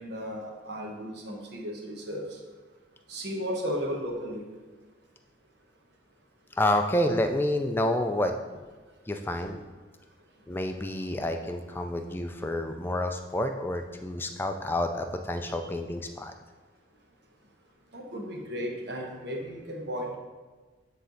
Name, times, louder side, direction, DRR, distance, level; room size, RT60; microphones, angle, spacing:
voice 1, 0.0-2.4 3.1-4.4 17.9-20.2, equal, 60° right, 1 dB, 1.0 m, -35 dB
voice 2, 6.6-8.3 9.1-9.6 10.5-16.3, left 1 dB, 10° left, 5 dB, 0.3 m, -29 dB
9.2 x 3.3 x 3.8 m, 1.3 s
head